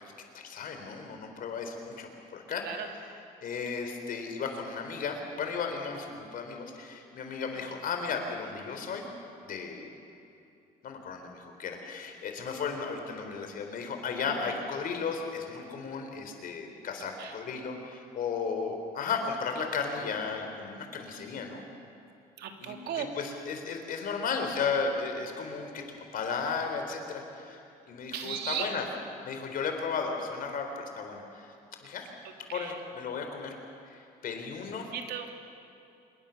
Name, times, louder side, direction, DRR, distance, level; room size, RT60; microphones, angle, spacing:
voice 1, 0.3-9.0 9.4-9.9 10.8-21.6 22.6-25.8 26.1-27.6 27.9-28.8 29.2-31.5 31.8-32.1 32.5-33.6 33.9-34.9, left 5 dB, 55° left, 4 dB, 4.3 m, -35 dB
voice 2, 22.4-23.1 28.1-28.7 32.5-32.8 34.9-35.3, right 9 dB, 70° right, 4 dB, 2.9 m, -36 dB
26.0 x 22.0 x 7.3 m, 2.7 s
cardioid pair, 110°, 17 cm